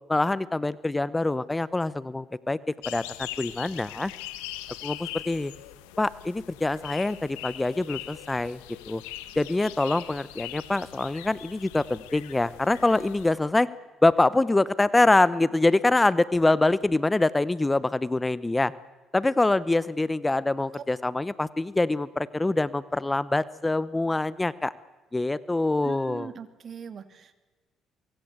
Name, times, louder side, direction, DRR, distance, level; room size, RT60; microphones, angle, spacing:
voice 1, 0.1-2.6 2.9-4.1 4.8-5.5 6.0-8.6 8.9-9.0 9.4-13.7 14.0-18.7 19.1-24.7 25.1-26.3, left 2 dB, 20° left, 18 dB, 0.9 m, -25 dB
sound 1, 2.8-13.3, left 15 dB, 90° left, 1.2 m, -41 dB
voice 2, 25.8-27.4, right 7 dB, 50° right, 11 dB, 2.3 m, -41 dB
24.0 x 23.5 x 8.2 m, 1.2 s
supercardioid pair, 60°, 0 cm